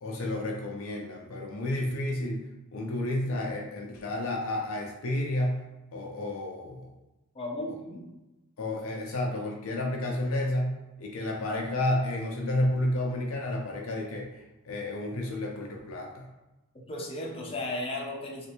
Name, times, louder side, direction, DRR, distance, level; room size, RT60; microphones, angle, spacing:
voice 1, 0.0-2.4 2.7-5.6 5.9-6.9 8.6-10.7 11.0-16.3, left 1 dB, 70° left, 0 dB, 0.5 m, -31 dB
voice 2, 7.3-8.0 16.9-18.5, left 1 dB, 25° left, -2 dB, 0.6 m, -35 dB
3.2 x 2.5 x 2.9 m, 1.0 s
head